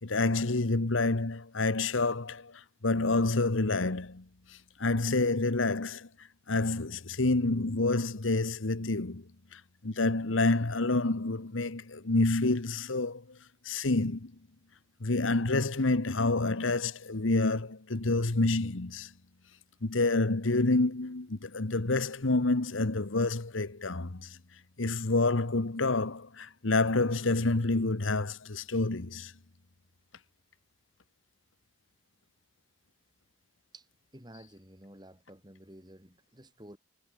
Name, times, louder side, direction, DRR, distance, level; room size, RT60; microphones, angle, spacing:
voice 1, 0.0-2.5 2.8-4.2 4.8-6.1 6.5-9.2 9.5-13.2 13.6-14.3 15.0-19.1 19.8-24.3 24.8-29.3, left 2 dB, 90° left, 1.3 m, -28 dB
voice 2, 34.1-36.8, right 1 dB, 20° right, 4.0 m, -52 dB
head